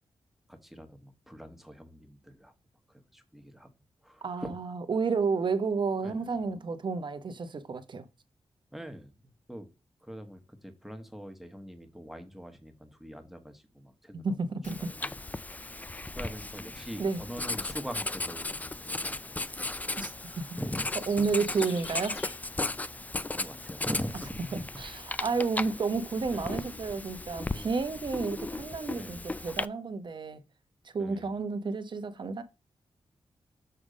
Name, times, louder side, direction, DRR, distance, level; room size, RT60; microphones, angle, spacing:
voice 1, 0.6-2.5 3.1-3.7 4.0-4.5 6.0-6.3 8.7-9.7 10.0-14.3 14.7-15.1 15.4-15.7 16.1-19.7 20.2-20.8 23.3-24.6 26.3-26.5 27.4-27.7 29.0-29.3 31.0-31.3, equal, ahead, 1.3 m, -43 dB
voice 2, 4.2-8.0 14.1-14.9 17.0-17.2 20.0-20.5 21.1-22.2 24.5-30.4 30.9-32.4, right 4 dB, 50° right, 0.9 m, -31 dB
Writing, 14.6-29.6, left 2 dB, 15° left, 0.4 m, -36 dB
sound 1, 20.8-22.5 23.5-23.6, left 4 dB, 75° left, 1.7 m, -48 dB
6.7 x 3.6 x 5.0 m
cardioid pair, 80°, 10 cm